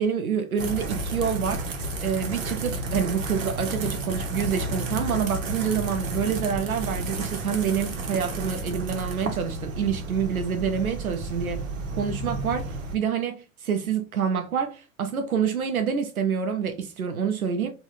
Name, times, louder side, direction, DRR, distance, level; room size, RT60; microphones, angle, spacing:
voice 1, 0.0-11.7 12.0-17.7, right 7 dB, 90° right, 0.5 m, -27 dB
sound 1, 0.6-13.0, right 2 dB, 65° right, 0.9 m, -32 dB
3.7 x 2.3 x 3.2 m
figure-of-eight pair, 85°, 42 cm